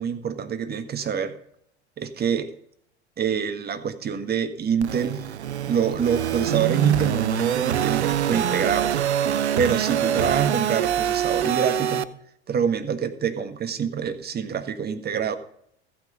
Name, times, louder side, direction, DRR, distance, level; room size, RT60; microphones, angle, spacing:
voice 1, 0.0-1.3 2.0-2.5 3.2-5.3 5.7-9.3 9.6-12.1 12.5-15.4, right 7 dB, 30° right, 9 dB, 1.5 m, -26 dB
sound 1, 4.8-12.0, right 10 dB, 80° right, 0.7 m, -25 dB
14.5 x 8.8 x 5.5 m, 0.67 s
figure-of-eight pair, 75°, 33 cm